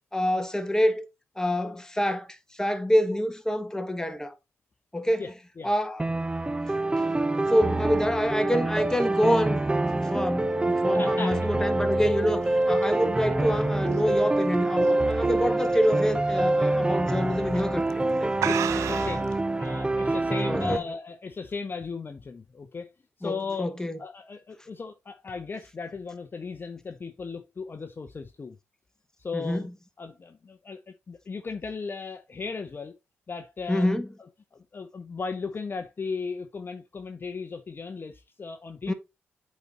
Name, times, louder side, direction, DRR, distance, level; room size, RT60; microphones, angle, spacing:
voice 1, 0.1-1.0 1.4-2.3 2.5-4.3 4.9-5.2 5.6-6.0 7.0-7.1 7.5-9.6 9.9-17.8 18.1-18.3 20.5-20.8 23.2-24.0 29.3-29.6 33.7-34.1 38.9-39.0, equal, 10° left, 1.6 m, -26 dB
voice 2, 5.2-5.7 10.9-11.5 18.5-19.3 19.6-22.9 23.2-23.7 24.0-28.6 29.2-29.7 30.0-32.9 33.3-33.9 34.5-38.9, left 4 dB, 45° left, 0.8 m, -36 dB
sound 1, 6.0-20.8, right 2 dB, 20° right, 0.8 m, -26 dB
sound 2, 12.2-15.4 15.8-16.1 16.5-16.6 17.4-17.6 17.9-18.0 18.4-19.3, right 10 dB, 75° right, 0.5 m, -33 dB
8.2 x 4.2 x 4.0 m
supercardioid pair, 45°, 5 cm